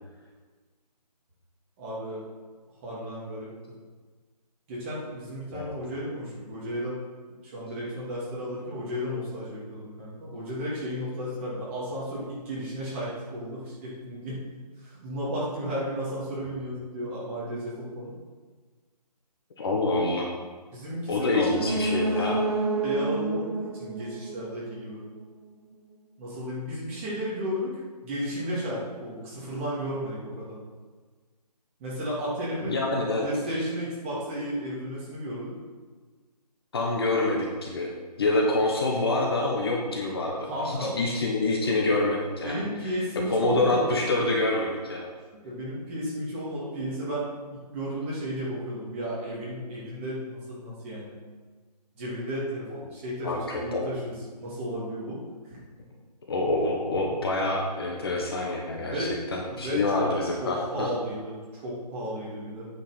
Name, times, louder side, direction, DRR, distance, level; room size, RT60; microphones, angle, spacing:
voice 1, 1.8-2.2 2.8-3.5 4.7-7.0 7.3-14.3 14.8-18.1 20.0-20.1 20.7-21.5 22.8-25.0 26.2-30.6 31.8-32.8 33.2-35.5 40.4-41.0 42.4-44.0 45.4-51.2 51.9-55.2 55.4-55.6 58.8-59.1 59.5-60.1 60.4-62.7, equal, 20° right, -7 dB, 2.5 m, -33 dB
voice 2, 19.6-20.3 21.1-22.4 32.7-33.3 36.7-37.9 38.2-40.4 40.6-42.9 43.3-45.1 53.2-53.9 56.3-60.9, left 2 dB, 35° left, 0 dB, 1.2 m, -26 dB
sound 1, 21.4-25.1 25.4-25.5, right 2 dB, 40° right, 0.9 m, -29 dB
9.0 x 5.8 x 5.8 m, 1.4 s
figure-of-eight pair, 165°, 21 cm